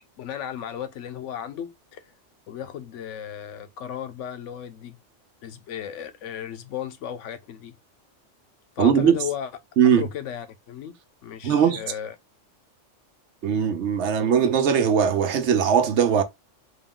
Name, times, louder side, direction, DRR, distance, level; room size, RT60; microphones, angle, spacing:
voice 1, 0.2-2.1 2.5-5.0 5.4-7.7 8.8-9.5 9.8-10.9 11.2-12.1, left 9 dB, 80° left, 0.9 m, -35 dB
voice 2, 8.8-9.2 9.8-10.1 11.4-11.8 13.4-16.2, right 7 dB, 70° right, 1.0 m, -20 dB
3.7 x 2.4 x 3.5 m
omnidirectional pair, 1.3 m